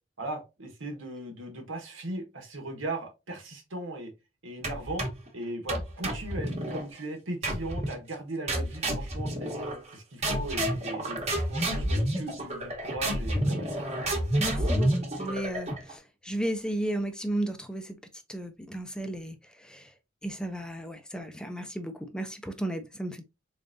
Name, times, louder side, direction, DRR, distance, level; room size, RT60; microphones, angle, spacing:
voice 1, 0.2-4.1 4.4-5.1 5.3-9.5 9.9-13.8, right 2 dB, 90° right, 1.3 m, -38 dB
sound 1, 4.6-5.3 5.7-6.9 7.4-8.0 8.5-9.9 10.2-15.9, right 1 dB, 35° right, 1.1 m, -29 dB
voice 2, 14.4-18.0 18.3-19.9 20.2-23.2, right 1 dB, 5° left, 0.5 m, -34 dB
3.9 x 3.6 x 2.6 m
head